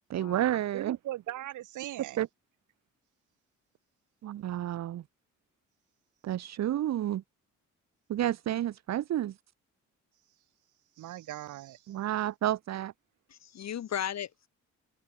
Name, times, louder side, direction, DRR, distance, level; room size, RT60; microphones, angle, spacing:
voice 1, 0.1-1.0 2.2-2.3 4.2-5.0 6.2-7.2 8.1-9.4 11.9-12.9, right 12 dB, 60° right, 1.0 m, -30 dB
voice 2, 0.7-2.2 11.0-11.9, right 14 dB, 85° right, 3.3 m, -39 dB
voice 3, 13.3-14.5, left 10 dB, 60° left, 2.6 m, -36 dB
cardioid pair, 90°, 30 cm